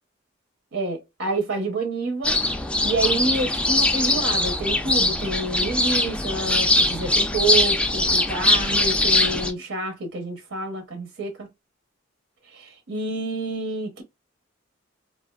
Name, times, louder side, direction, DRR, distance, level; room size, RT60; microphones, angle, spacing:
voice 1, 0.7-2.3 2.8-11.5 12.5-14.0, right 2 dB, 70° right, 0.8 m, -28 dB
sound 1, 2.2-9.5, left 2 dB, 5° left, 0.3 m, -21 dB
3.2 x 2.4 x 2.2 m
head